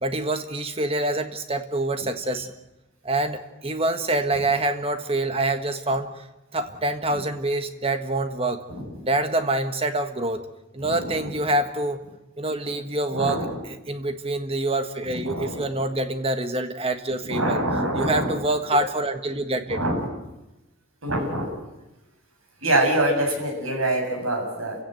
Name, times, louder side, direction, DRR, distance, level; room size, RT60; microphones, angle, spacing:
voice 1, 0.0-2.5 3.0-6.3 6.5-8.6 9.0-10.5 10.7-12.0 12.4-17.6 17.9-19.8, right 2 dB, 25° right, 8 dB, 1.5 m, -26 dB
voice 2, 10.8-11.3 13.1-13.5 15.2-15.6 17.3-18.4 19.7-20.0 21.0-21.5 22.6-24.8, right 1 dB, 75° right, 2 dB, 7.4 m, -25 dB
29.5 x 16.5 x 7.9 m, 0.98 s
head